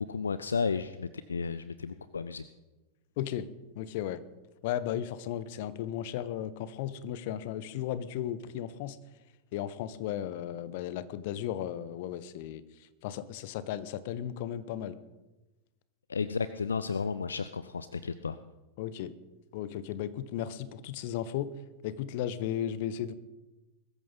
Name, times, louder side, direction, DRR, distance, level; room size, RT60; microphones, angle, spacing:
voice 1, 0.0-2.4 16.1-18.4, left 5 dB, 75° left, 14 dB, 0.5 m, -33 dB
voice 2, 3.2-3.5 3.8-4.2 4.6-9.0 9.5-12.6 13.0-15.0 18.8-19.1 19.5-21.5 21.8-23.1, left 11 dB, 50° left, 15 dB, 1.0 m, -35 dB
21.5 x 13.5 x 4.0 m, 1.1 s
figure-of-eight pair, 90°, 0 cm